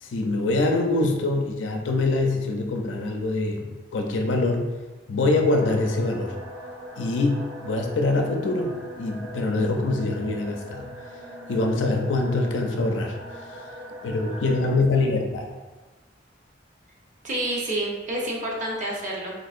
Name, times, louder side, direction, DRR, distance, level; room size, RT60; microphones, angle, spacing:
voice 1, 0.0-4.7 5.1-6.3 7.0-10.9 11.5-13.2 13.5-13.6 14.0-15.5, left 2 dB, 90° left, 3 dB, 0.5 m, -24 dB
sound 1, 5.5-14.7, equal, 90° right, 0.8 m, -40 dB
voice 2, 17.2-19.3, right 1 dB, 45° right, -3 dB, 0.8 m, -28 dB
3.8 x 2.7 x 2.4 m, 1.2 s
head